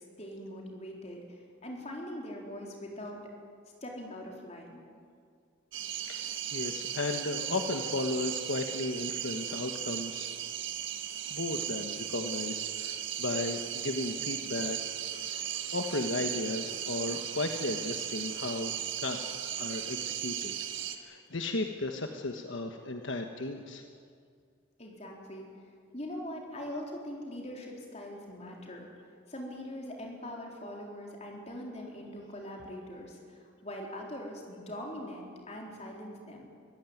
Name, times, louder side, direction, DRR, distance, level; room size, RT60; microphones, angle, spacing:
voice 1, 0.2-3.2 3.8-4.8 24.8-25.5 25.9-28.9 29.3-36.5, left 1 dB, 30° left, 0 dB, 4.1 m, -42 dB
sound 1, 5.7-21.0, right 10 dB, 65° right, 1.6 m, -36 dB
voice 2, 6.0-10.3 11.3-14.8 15.1-18.7 19.0-20.5 21.0-23.8, left 2 dB, 70° left, 5 dB, 1.3 m, -35 dB
24.0 x 16.0 x 9.4 m, 2.1 s
head